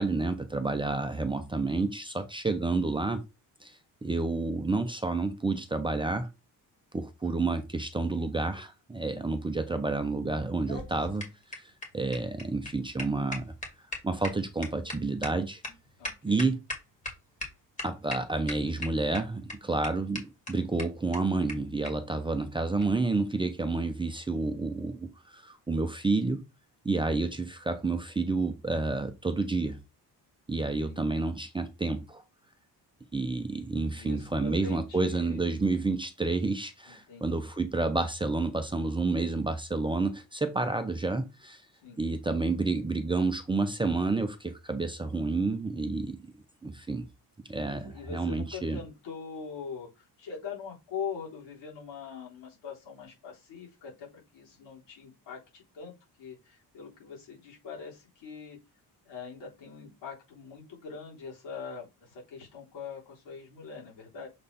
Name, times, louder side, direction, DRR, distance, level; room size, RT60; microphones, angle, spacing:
voice 1, 0.0-3.2 3.6-6.3 6.9-13.5 14.0-15.6 16.2-16.6 17.8-26.5 26.8-29.8 30.5-32.2 33.1-41.6 42.0-46.3 46.6-47.1 47.5-48.8, right 3 dB, 10° right, 0.5 m, -30 dB
sound 1, 10.4-17.1 17.4-17.5 17.8-18.2 18.5-19.2 19.5-19.6 19.8-19.9 20.1-20.2 20.5-20.6 20.8-20.9 21.1-21.2 21.5-21.6 21.8-21.9 22.8-22.9, left 2 dB, 20° left, 2.0 m, -37 dB
voice 2, 16.0-16.4 30.6-31.2 33.9-35.4 36.9-37.4 41.8-42.0 47.7-58.6 59.0-64.3, left 6 dB, 85° left, 3.9 m, -43 dB
6.7 x 3.4 x 4.1 m
cardioid pair, 165°, 41 cm